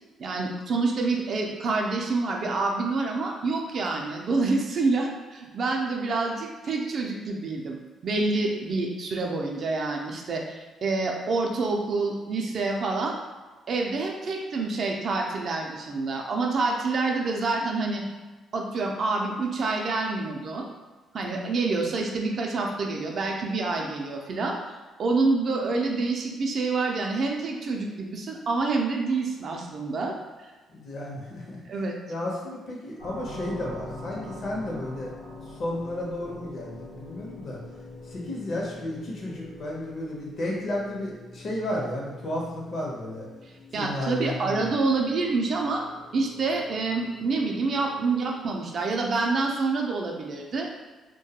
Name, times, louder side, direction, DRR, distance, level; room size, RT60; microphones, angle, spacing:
voice 1, 0.2-13.2 13.7-18.0 18.5-20.7 21.1-24.6 25.0-30.1 31.7-31.9 43.7-45.8 46.1-50.7, right 3 dB, 55° right, 1 dB, 0.4 m, -27 dB
voice 2, 30.7-31.6 32.1-35.1 35.5-37.6 38.0-43.3 43.8-44.7, left 1 dB, 55° left, -2 dB, 0.7 m, -33 dB
sound 1, 33.0-48.4, left 2 dB, 90° left, 0.9 m, -44 dB
2.2 x 2.2 x 2.8 m, 1.2 s
cardioid pair, 90°, 0 cm